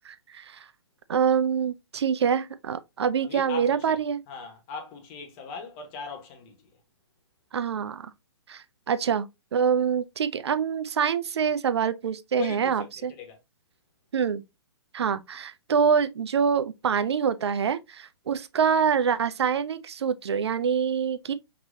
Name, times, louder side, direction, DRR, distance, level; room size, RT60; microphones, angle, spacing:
voice 1, 0.0-0.6 1.1-4.2 7.5-8.1 8.5-9.3 9.5-13.1 14.1-14.4 14.9-21.3, right 7 dB, 70° right, 0.5 m, -25 dB
voice 2, 3.2-4.0 4.3-6.6 12.3-13.4, left 5 dB, 30° left, 1.4 m, -39 dB
5.2 x 3.0 x 2.7 m
hypercardioid pair, 130°, 14 cm